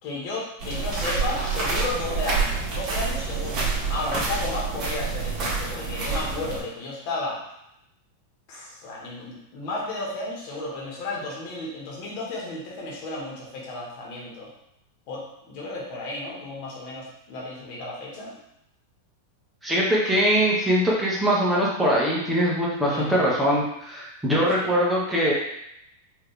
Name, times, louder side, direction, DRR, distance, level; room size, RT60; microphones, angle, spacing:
voice 1, 0.0-7.4 8.5-14.5 15.1-18.3 22.8-23.3 24.3-24.7, left 2 dB, 55° left, -4 dB, 1.6 m, -33 dB
sound 1, 0.6-6.6, right 4 dB, 40° right, 1.7 m, -27 dB
voice 2, 19.6-25.3, equal, 10° right, -6 dB, 1.3 m, -22 dB
4.6 x 3.0 x 3.4 m, 0.80 s
hypercardioid pair, 120°, 0 cm